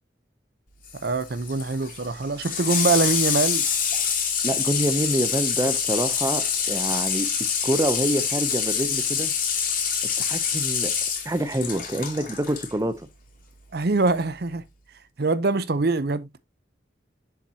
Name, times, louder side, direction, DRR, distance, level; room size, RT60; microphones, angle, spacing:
Water tap faucet / Sink (filling or washing), 0.9-12.7 14.0-14.1, left 7 dB, 45° left, 2.7 m, -26 dB
voice 1, 1.0-3.6 13.7-14.6 15.2-16.4, right 3 dB, 55° right, 0.6 m, -24 dB
voice 2, 4.4-9.3 10.2-10.9 11.2-13.1, right 1 dB, 15° right, 0.5 m, -26 dB
7.4 x 7.1 x 2.7 m
head